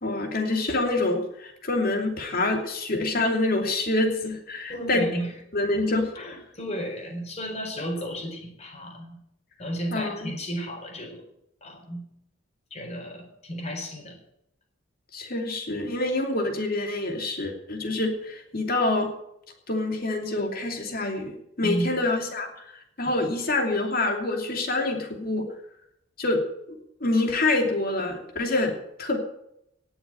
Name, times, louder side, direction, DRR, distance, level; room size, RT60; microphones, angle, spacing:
voice 1, 0.0-5.0 5.5-6.1 9.9-10.3 15.1-19.1 19.7-21.3 21.6-22.7 23.0-25.5 26.2-26.4 26.7-28.7 29.0-29.2, left 2 dB, 50° left, 3 dB, 2.8 m, -26 dB
voice 2, 4.7-5.3 6.2-9.2 9.6-11.2 11.6-12.0 12.7-14.2 21.6-21.9 23.1-23.2, equal, 35° left, 2 dB, 4.5 m, -33 dB
19.0 x 7.1 x 8.9 m, 0.77 s
head